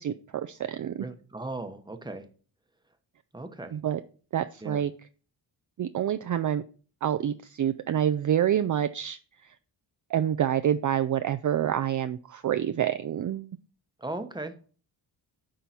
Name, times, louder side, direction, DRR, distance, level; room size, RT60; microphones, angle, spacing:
voice 1, 0.0-1.0 3.7-4.0 4.3-4.9 5.8-6.6 7.0-9.2 10.1-13.5, right 10 dB, 45° right, 10 dB, 0.4 m, -27 dB
voice 2, 1.0-2.3 3.3-3.8 4.6-4.8 14.0-14.7, right 2 dB, 10° right, 7 dB, 1.0 m, -37 dB
10.0 x 3.9 x 4.3 m, 0.41 s
cardioid pair, 90°, 44 cm